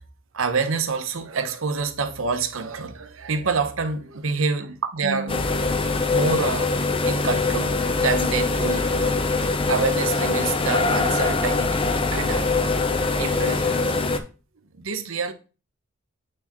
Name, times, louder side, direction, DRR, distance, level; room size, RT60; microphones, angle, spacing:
voice 1, 0.3-5.6 6.1-6.7 7.0-12.5 13.2-13.9 14.7-15.3, right 4 dB, 70° right, 0.9 m, -27 dB
sound 1, 5.3-14.2, left 3 dB, 25° left, 0.6 m, -23 dB
8.6 x 4.5 x 3.0 m
head